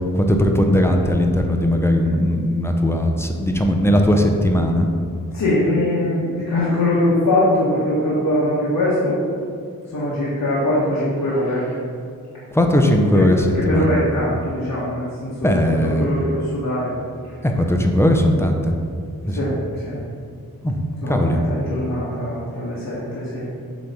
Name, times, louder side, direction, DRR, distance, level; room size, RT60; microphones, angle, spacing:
voice 1, 0.1-4.9 12.5-14.0 15.4-16.1 17.4-18.7 19.3-19.5 20.6-21.4, equal, 5° left, 3 dB, 0.7 m, -18 dB
voice 2, 5.3-9.2 9.9-11.7 13.1-13.2 13.7-15.5 16.0-16.9 19.3-19.5 19.8-20.0 21.0-23.5, left 1 dB, 70° left, -9 dB, 1.5 m, -22 dB
7.8 x 3.2 x 5.5 m, 2.3 s
wide cardioid pair, 100°, 35 cm